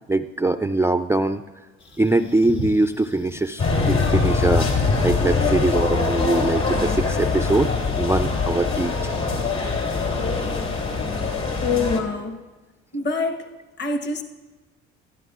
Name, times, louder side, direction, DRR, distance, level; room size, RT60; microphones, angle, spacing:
voice 1, 0.1-1.4 2.0-4.7 5.0-7.7 8.0-8.9, right 2 dB, 10° right, 9 dB, 0.3 m, -22 dB
sound 1, 1.8-11.1, left 1 dB, 80° left, 1.8 m, -39 dB
sound 2, 3.6-12.0, left 4 dB, 60° left, 3.2 m, -23 dB
voice 2, 11.6-12.4 12.9-13.5 13.8-14.2, left 4 dB, 35° left, 5 dB, 1.2 m, -25 dB
19.5 x 13.0 x 2.4 m, 1.2 s
hypercardioid pair, 60°, 30 cm